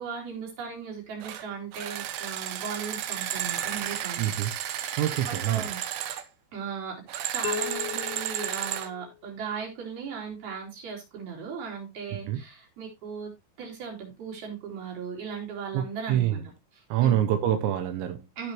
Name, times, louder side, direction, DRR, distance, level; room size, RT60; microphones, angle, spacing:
voice 1, 0.0-4.2 5.3-5.8 6.5-13.3 13.6-16.4 16.7-17.2 18.4-18.5, right 6 dB, 55° right, 5.6 m, -37 dB
sound 1, 1.2-1.4 1.7-6.2 7.1-8.9, right 11 dB, 70° right, 2.5 m, -33 dB
voice 2, 4.2-4.5 5.0-5.7 12.3-12.4 15.7-16.5 16.9-18.2, right 11 dB, 90° right, 3.2 m, -26 dB
sound 2, 7.4-9.4, left 17 dB, 80° left, 2.3 m, -37 dB
15.5 x 6.0 x 3.0 m
omnidirectional pair, 5.1 m